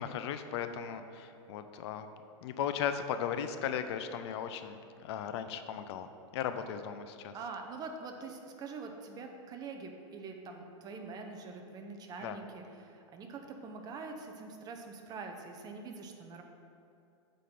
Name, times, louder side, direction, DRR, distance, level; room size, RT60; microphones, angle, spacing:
voice 1, 0.0-2.1 2.4-7.3 12.2-12.4, left 8 dB, 60° left, 9 dB, 0.6 m, -37 dB
voice 2, 7.3-16.4, right 4 dB, 25° right, 4 dB, 0.7 m, -44 dB
8.3 x 3.9 x 5.9 m, 2.7 s
hypercardioid pair, 140°, 16 cm